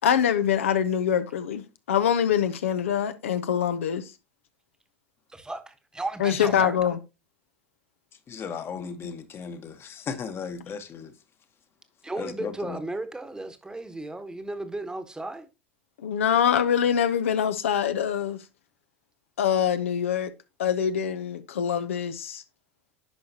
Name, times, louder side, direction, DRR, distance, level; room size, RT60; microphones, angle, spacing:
voice 1, 0.0-4.0 6.2-7.0 16.0-18.4 19.4-20.3 20.6-22.4, left 8 dB, 80° left, 0.6 m, -24 dB
voice 2, 5.3-6.8 12.0-15.5, right 2 dB, 10° right, 1.1 m, -35 dB
voice 3, 8.3-11.1 12.2-12.8, left 6 dB, 35° left, 1.1 m, -36 dB
10.5 x 4.9 x 2.8 m
hypercardioid pair, 80°, 7 cm